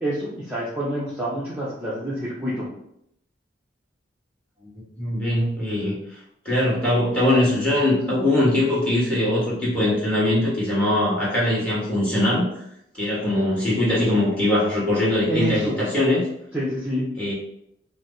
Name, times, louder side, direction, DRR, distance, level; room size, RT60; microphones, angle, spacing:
voice 1, 0.0-2.7 15.3-15.8 16.5-17.1, right 1 dB, 10° right, -9 dB, 0.7 m, -27 dB
voice 2, 5.0-5.9 6.4-12.4 12.9-16.2 17.2-17.3, left 1 dB, 5° left, -7 dB, 1.6 m, -21 dB
4.7 x 2.1 x 3.8 m, 0.77 s
head